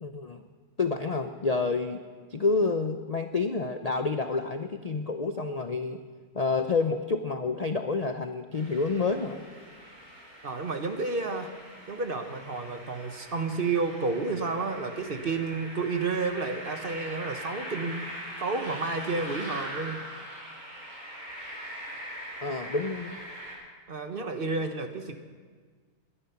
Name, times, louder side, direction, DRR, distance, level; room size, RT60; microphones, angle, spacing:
voice 1, 0.0-0.4 0.8-2.0 2.3-6.0 6.3-9.4 22.4-23.2, left 4 dB, 40° left, 7 dB, 0.5 m, -28 dB
sound 1, 8.5-23.5, right 1 dB, 90° right, 5.1 m, -42 dB
voice 2, 10.4-11.5 11.9-18.1 18.4-20.0 23.9-25.2, right 3 dB, 40° right, 7 dB, 1.2 m, -31 dB
21.5 x 11.0 x 5.8 m, 1.5 s
omnidirectional pair, 1.5 m